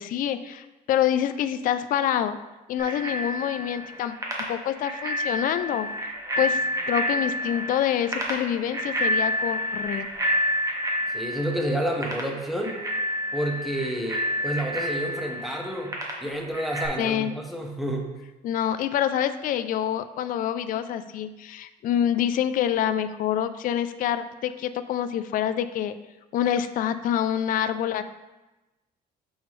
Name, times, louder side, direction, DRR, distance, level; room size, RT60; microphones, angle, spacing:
voice 1, 0.0-2.4 2.7-4.1 4.5-5.9 6.4-6.6 6.9-10.1 17.0-17.3 18.4-26.0 26.3-28.0, left 10 dB, 55° left, 11 dB, 0.4 m, -26 dB
Bicycle bell, 2.8-16.9, equal, 20° right, 1.3 m, -29 dB
voice 2, 11.1-12.8 13.3-15.9 16.2-18.1, right 1 dB, ahead, 1 dB, 1.0 m, -29 dB
6.3 x 5.1 x 3.2 m, 1.1 s
cardioid pair, 110°, 17 cm